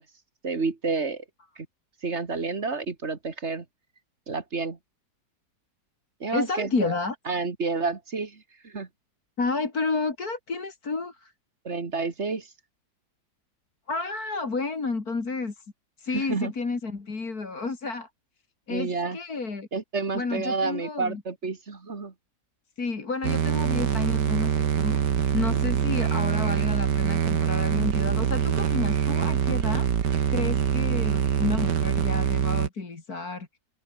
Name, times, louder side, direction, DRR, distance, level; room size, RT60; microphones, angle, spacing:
voice 1, 0.4-1.2 1.6-1.7 2.0-3.7 4.3-4.8 6.2-6.9 7.3-8.9 11.6-12.5 16.1-16.5 18.7-19.2 19.7-22.1 25.5-25.6, right 4 dB, 40° right, 2.3 m, -30 dB
voice 2, 6.3-7.2 9.4-11.3 13.9-15.7 16.0-18.1 18.7-19.7 20.1-21.2 22.8-25.0 25.3-33.5, left 4 dB, 60° left, 3.5 m, -31 dB
sound 1, 23.2-32.7, right 8 dB, 80° right, 2.1 m, -24 dB
omnidirectional pair, 1.8 m